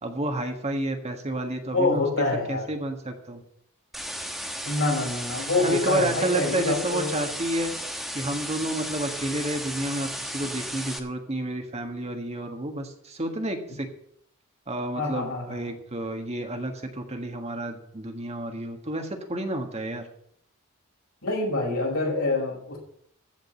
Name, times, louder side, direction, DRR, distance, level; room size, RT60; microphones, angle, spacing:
voice 1, 0.0-3.4 5.6-7.7 8.1-13.9 14.7-20.1, right 1 dB, 30° right, 4 dB, 1.6 m, -30 dB
voice 2, 1.7-2.7 4.6-7.1 14.9-15.6 21.2-22.8, left 2 dB, 65° left, -2 dB, 5.7 m, -26 dB
sound 1, 3.9-11.0, equal, ahead, 1.1 m, -34 dB
15.0 x 5.2 x 8.7 m, 0.69 s
head